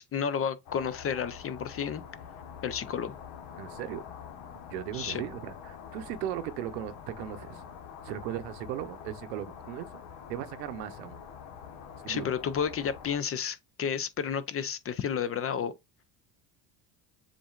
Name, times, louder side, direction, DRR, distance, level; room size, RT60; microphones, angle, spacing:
voice 1, 0.0-2.0 2.6-3.1 4.9-5.2 12.1-15.7, left 7 dB, 30° left, 0.5 m, -31 dB
sound 1, 0.7-13.2, left 7 dB, 65° left, 1.2 m, -46 dB
voice 2, 3.6-4.0 4.7-7.6 8.0-10.0 10.3-11.2 12.0-12.3, right 11 dB, 80° right, 0.8 m, -37 dB
7.3 x 2.5 x 2.4 m
hypercardioid pair, 75°, 48 cm